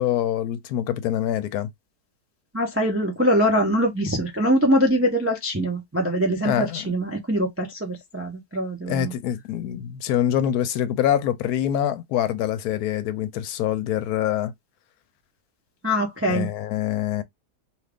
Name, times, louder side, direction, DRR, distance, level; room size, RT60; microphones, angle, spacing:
voice 1, 0.0-1.7 6.4-7.0 8.9-14.5 16.3-17.2, left 11 dB, 80° left, 1.1 m, -25 dB
voice 2, 2.5-9.1 15.8-16.5, equal, 20° right, 0.3 m, -23 dB
2.7 x 2.4 x 3.3 m
omnidirectional pair, 1.6 m